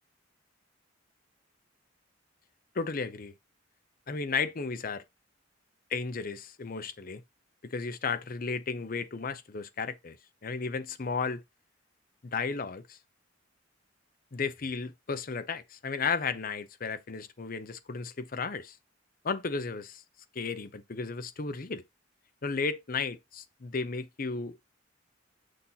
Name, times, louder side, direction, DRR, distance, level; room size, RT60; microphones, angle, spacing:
voice 1, 2.7-3.3 4.1-5.0 5.9-7.2 7.7-10.2 10.4-11.4 12.2-13.0 14.3-18.8 19.2-20.0 20.3-21.8 22.4-24.6, left 4 dB, 45° left, 0.6 m, -34 dB
6.5 x 2.7 x 5.6 m
head